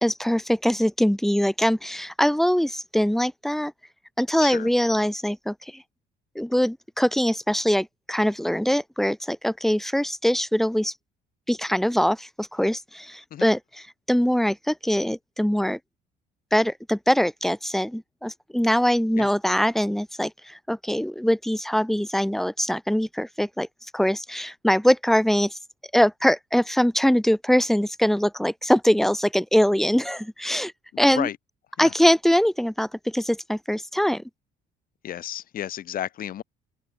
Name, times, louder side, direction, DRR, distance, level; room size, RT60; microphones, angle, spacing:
voice 1, 0.0-3.7 4.2-5.8 6.3-10.9 11.5-15.8 16.5-23.7 23.9-25.6 25.9-30.7 31.0-31.3 31.8-34.2, equal, ahead, 2.6 m, -23 dB
voice 2, 30.9-31.4 31.8-31.9 35.0-36.4, left 11 dB, 60° left, 2.7 m, -32 dB
open air
cardioid pair, 110°, 17 cm